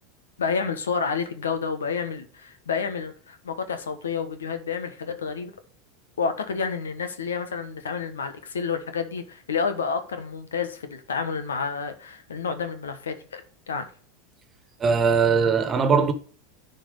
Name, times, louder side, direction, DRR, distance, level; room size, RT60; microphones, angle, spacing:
voice 1, 0.4-5.5 6.2-13.4 13.7-13.9, left 5 dB, 90° left, 1.3 m, -29 dB
voice 2, 14.8-16.1, right 5 dB, 30° right, 1.5 m, -20 dB
10.5 x 4.3 x 5.2 m
hypercardioid pair, 95°, 0 cm